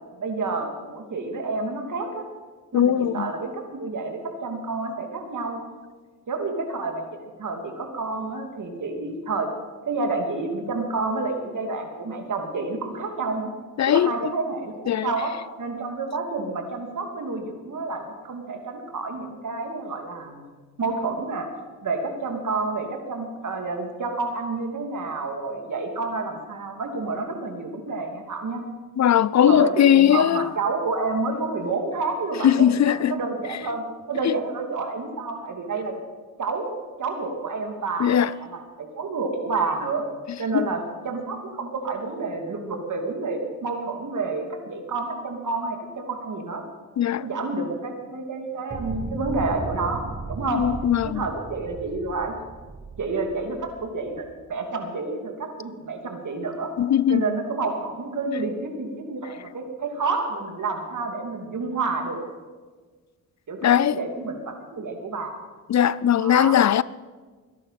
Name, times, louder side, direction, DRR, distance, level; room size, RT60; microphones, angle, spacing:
voice 1, 0.2-2.2 2.7-5.6 6.3-7.0 7.4-9.5 9.8-13.5 13.9-20.4 20.8-21.5 21.8-28.6 29.4-36.0 36.4-36.7 37.0-40.1 40.4-46.6 47.2-50.6 51.1-52.3 53.0-56.7 57.1-62.2 63.5-65.4 66.2-66.6, right 3 dB, 60° right, 2.8 m, -29 dB
voice 2, 2.7-3.3 13.8-14.1 14.9-15.1 29.0-30.5 32.4-33.2 34.2-34.3 38.0-38.3 40.5-40.7 47.0-47.3 50.5-51.2 56.8-57.2 63.6-64.0 65.7-66.8, left 10 dB, 55° left, 0.5 m, -19 dB
sound 1, 48.7-54.4, right 3 dB, 20° right, 4.3 m, -36 dB
23.0 x 10.5 x 5.8 m
cardioid pair, 70°, 34 cm